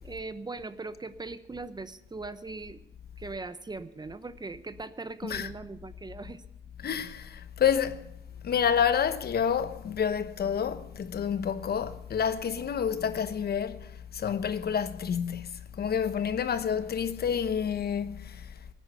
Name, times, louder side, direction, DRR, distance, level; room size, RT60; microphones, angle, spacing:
voice 1, 0.0-2.8 3.2-6.4, right 3 dB, 20° right, 0.9 m, -40 dB
voice 2, 6.8-8.0 8.4-18.5, left 8 dB, 50° left, 1.1 m, -29 dB
18.0 x 9.8 x 6.8 m
cardioid pair, 90°, 20 cm